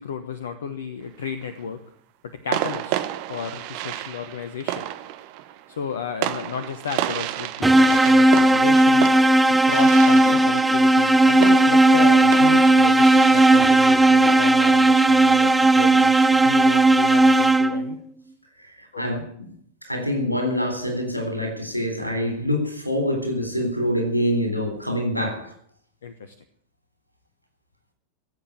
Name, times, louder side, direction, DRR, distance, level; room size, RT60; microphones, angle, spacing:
voice 1, 0.0-1.8 2.2-3.0 3.3-4.8 5.7-9.1 9.6-18.0 18.9-19.3 26.0-26.3, left 6 dB, 65° left, 1.1 m, -33 dB
sound 1, 1.0-1.6 2.5-15.9, right 13 dB, 45° right, 1.1 m, -32 dB
sound 2, 7.6-18.0, right 2 dB, 5° right, 0.6 m, -16 dB
voice 2, 18.8-19.5 19.8-25.5, left 1 dB, 90° left, 3.8 m, -25 dB
16.0 x 8.0 x 8.8 m
figure-of-eight pair, 90°, 0 cm